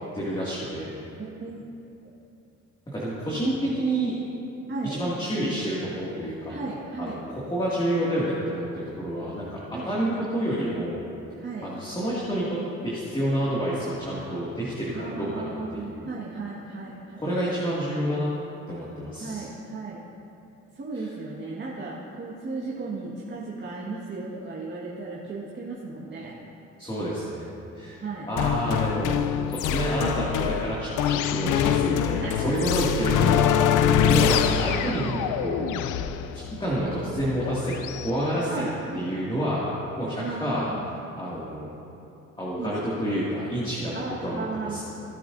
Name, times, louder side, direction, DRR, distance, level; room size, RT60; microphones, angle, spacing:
voice 1, 0.1-0.9 2.9-4.1 4.8-6.5 7.0-11.0 11.6-12.6 12.8-16.0 17.2-18.3 18.7-19.5 20.9-21.1 26.8-27.5 27.8-28.0 28.2-33.5 34.1-35.8 36.3-39.7 40.0-40.7 41.2-41.7 42.4-44.8, right 1 dB, 15° left, -8 dB, 2.3 m, -29 dB
voice 2, 1.2-1.6 4.7-5.0 6.5-7.2 9.7-10.2 11.4-11.7 14.9-17.3 19.2-20.0 20.7-26.3 28.0-28.3 32.2-32.3 34.0-34.3 38.5-39.0 40.2-40.9 42.6-42.7 43.9-44.8, right 3 dB, 35° right, -5 dB, 1.7 m, -35 dB
sound 1, 28.4-38.1, left 9 dB, 85° left, 0.5 m, -24 dB
18.0 x 8.6 x 2.7 m, 2.8 s
cardioid pair, 90°, 30 cm